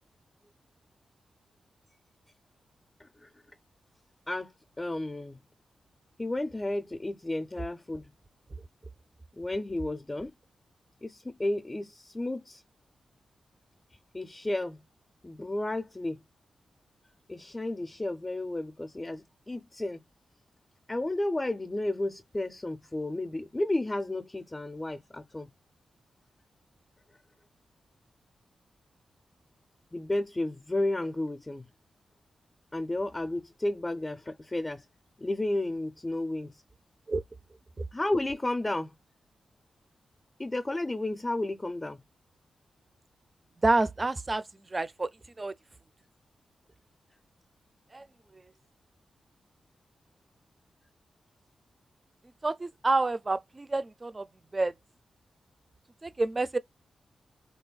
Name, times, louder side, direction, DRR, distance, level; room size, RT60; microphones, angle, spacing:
voice 1, 4.8-5.4 6.2-8.1 9.4-10.3 11.0-12.6 14.1-14.8 15.2-16.2 17.3-20.0 20.9-25.5 29.9-31.6 32.7-34.8 35.2-36.6 37.9-38.9 40.4-42.0, left 1 dB, 25° left, 0.4 m, -32 dB
voice 2, 43.6-44.4 44.7-45.1 45.4-45.5 47.9-48.0 52.4-54.2 54.5-54.7 56.0-56.6, right 2 dB, 35° right, 0.3 m, -28 dB
3.2 x 2.1 x 2.2 m
supercardioid pair, 45°, 0 cm